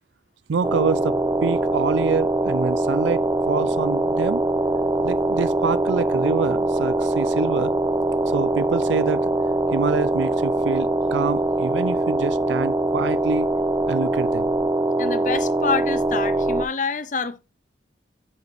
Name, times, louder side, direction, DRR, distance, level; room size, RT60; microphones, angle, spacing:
voice 1, 0.5-4.4 5.0-7.7 8.3-9.3 9.7-13.5 13.9-14.5, right 5 dB, 85° right, 0.4 m, -26 dB
sound 1, 0.6-16.7, right 2 dB, 20° right, 0.5 m, -22 dB
voice 2, 15.0-17.4, left 4 dB, 45° left, 0.6 m, -27 dB
10.5 x 5.0 x 3.2 m
head